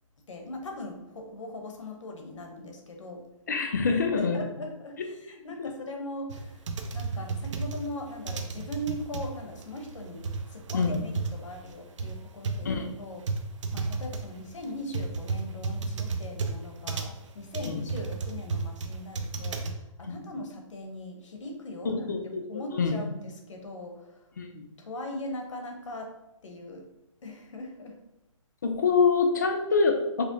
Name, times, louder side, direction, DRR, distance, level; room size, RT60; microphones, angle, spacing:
voice 1, 0.3-3.2 4.1-6.6 6.9-13.2 13.7-22.1 22.5-24.2 24.8-26.1 26.4-26.8 27.2-27.9, left 1 dB, 60° left, 2 dB, 0.8 m, -40 dB
voice 2, 3.5-4.5 5.6-5.7 10.7-11.0 12.6-12.9 17.6-17.9 21.8-22.4 22.7-23.0 24.4-24.7 28.6-30.2, left 4 dB, 35° left, 5 dB, 0.4 m, -25 dB
sound 1, 6.3-19.7, right 4 dB, 65° right, 0.5 m, -33 dB
4.8 x 2.0 x 2.6 m, 0.94 s
hypercardioid pair, 175°, 17 cm